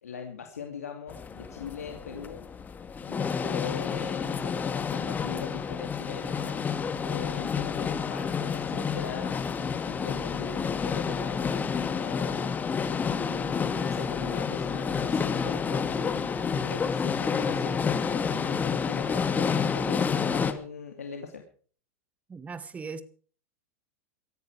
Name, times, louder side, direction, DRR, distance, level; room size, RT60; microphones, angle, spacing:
voice 1, 0.0-2.4 3.1-6.6 7.0-9.4 9.9-12.5 13.1-21.4, left 6 dB, 85° left, 4 dB, 2.8 m, -41 dB
sound 1, 1.1-20.5, left 6 dB, 20° left, 2.1 m, -29 dB
voice 2, 22.3-23.0, right 5 dB, 20° right, 14 dB, 1.8 m, -38 dB
18.5 x 14.0 x 4.9 m, 0.43 s
hypercardioid pair, 105°, 8 cm